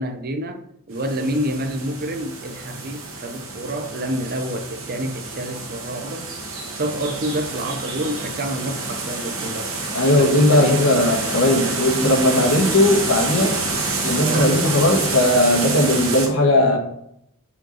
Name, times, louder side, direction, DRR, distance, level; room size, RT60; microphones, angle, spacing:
voice 1, 0.0-6.3 6.7-9.7 10.1-11.2 14.2-14.6, right 1 dB, 45° right, 0.7 m, -28 dB
sound 1, 0.9-16.3, right 3 dB, 65° right, 1.7 m, -28 dB
voice 2, 9.9-13.6 14.0-16.8, left 1 dB, 90° left, 1.8 m, -17 dB
5.2 x 5.1 x 5.7 m
head